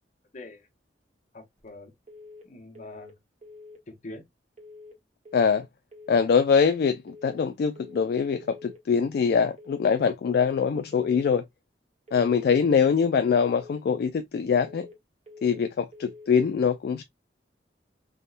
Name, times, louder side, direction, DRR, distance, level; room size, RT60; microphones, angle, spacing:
voice 1, 0.3-0.7 1.3-1.9 2.4-3.1 3.9-4.3, left 2 dB, 45° left, 0.8 m, -43 dB
sound 1, 2.1-2.5 2.7-3.1 3.4-3.8 4.6-5.0 5.2-5.6 5.9-6.3 7.1-7.5 7.7-8.1 8.4-8.8 9.6-10.0 10.2-10.6 10.9-11.3 12.1-12.5 12.8-13.1 13.4-13.8 14.6-15.0 15.3-15.7 15.9-16.3, left 3 dB, 40° right, 1.0 m, -47 dB
voice 2, 5.3-5.7 6.1-11.4 12.1-14.9 15.4-17.0, left 6 dB, 60° left, 0.3 m, -23 dB
3.5 x 2.1 x 2.3 m
head